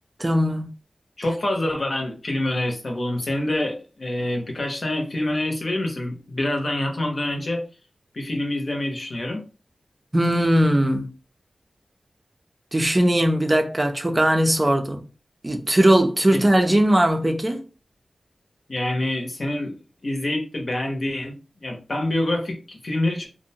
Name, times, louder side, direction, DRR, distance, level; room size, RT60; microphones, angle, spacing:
voice 1, 0.2-0.7 10.1-11.1 12.7-15.0 15.4-17.6, right 1 dB, 25° right, 0.4 m, -19 dB
voice 2, 1.2-7.6 8.1-9.4 16.3-16.4 18.7-19.8 20.0-23.3, left 1 dB, 55° left, 0.7 m, -26 dB
2.6 x 2.1 x 2.7 m
wide cardioid pair, 65°, 0 cm